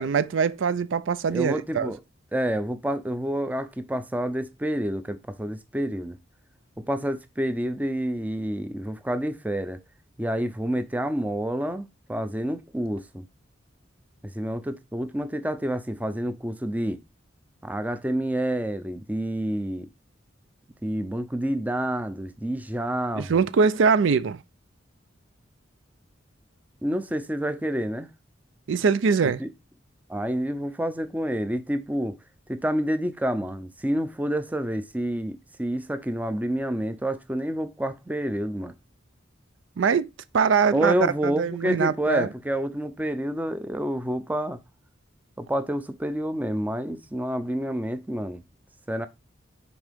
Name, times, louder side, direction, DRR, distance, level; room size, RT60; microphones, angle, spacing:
voice 1, 0.0-1.9 23.1-24.4 28.7-29.4 39.8-41.0 41.2-42.3, right 5 dB, 70° right, 0.4 m, -23 dB
voice 2, 1.3-2.0 2.3-6.2 6.8-9.8 10.2-13.2 14.3-17.0 17.6-19.9 20.8-23.4 26.8-28.1 29.4-29.5 30.1-32.2 32.5-38.7 40.7-44.6 45.4-48.4 48.9-49.1, right 1 dB, 10° right, 0.5 m, -28 dB
6.2 x 4.5 x 3.5 m
head